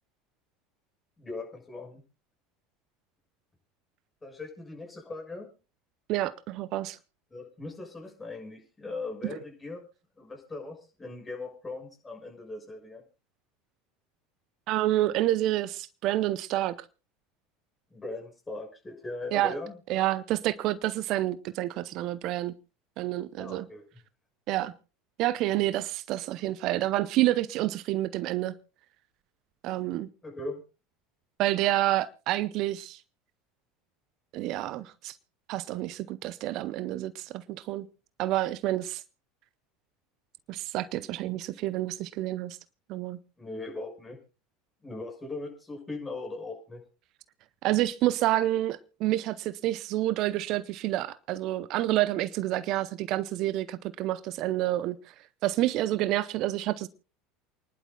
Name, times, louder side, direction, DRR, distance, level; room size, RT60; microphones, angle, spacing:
voice 1, 1.2-2.0 4.2-5.5 7.3-9.8 10.2-13.0 17.9-19.8 23.4-23.8 30.2-30.6 43.4-44.2 44.8-46.8, left 2 dB, 20° left, 6.6 m, -39 dB
voice 2, 6.1-7.0 14.7-16.8 19.3-19.5 19.9-22.5 23.0-23.7 24.5-24.7 25.2-28.5 29.6-30.1 31.4-33.0 34.3-35.2 35.5-37.9 38.2-39.0 40.5-42.6 42.9-43.2 47.6-55.0 55.4-56.9, right 15 dB, 55° right, 0.6 m, -28 dB
28.5 x 11.0 x 2.3 m
hypercardioid pair, 75°, 0 cm